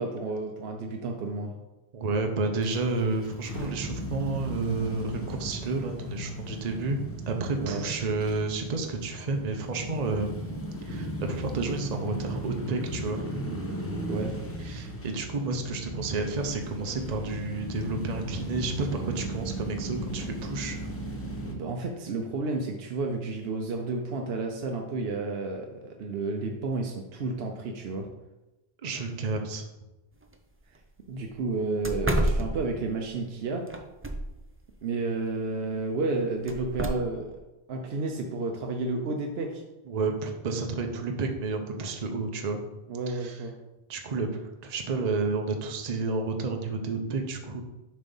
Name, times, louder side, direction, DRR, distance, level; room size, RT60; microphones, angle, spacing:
voice 1, 0.0-1.5 7.6-7.8 14.0-14.3 21.4-28.1 31.1-33.6 34.8-37.4 37.7-39.6 42.9-43.5, right 3 dB, 70° right, 2 dB, 0.9 m, -31 dB
voice 2, 1.9-7.0 7.3-10.4 10.8-13.2 14.6-20.9 28.8-29.7 39.9-42.6 43.1-43.4 43.9-47.6, right 3 dB, 45° right, 4 dB, 0.8 m, -31 dB
sound 1, 2.6-21.6, equal, 15° left, 0.8 m, -36 dB
sound 2, 30.2-30.3 30.7-30.8 31.2-31.3 31.8-33.1 33.7-34.5 36.5-36.9, right 1 dB, 20° right, 0.3 m, -29 dB
7.2 x 3.3 x 5.4 m, 1.0 s
omnidirectional pair, 1.1 m